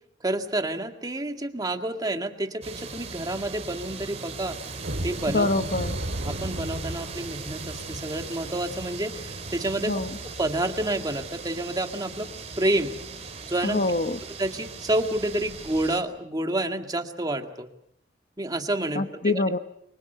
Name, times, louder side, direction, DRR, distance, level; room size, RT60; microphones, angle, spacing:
voice 1, 0.2-4.6 5.0-5.5 6.2-10.0 10.4-12.3 12.6-12.9 13.5-13.8 14.4-17.7 18.4-19.4, right 1 dB, 20° right, 5 dB, 2.1 m, -29 dB
sound 1, 2.6-16.0, right 4 dB, 40° right, 4.3 m, -39 dB
sound 2, 4.8-11.5 11.9-12.1 12.5-12.6 13.1-13.3, equal, 65° right, 3.0 m, -37 dB
voice 2, 5.3-6.0 9.8-10.1 13.6-14.2 19.0-19.6, left 2 dB, 50° left, 10 dB, 1.1 m, -25 dB
29.5 x 24.5 x 6.9 m, 0.72 s
head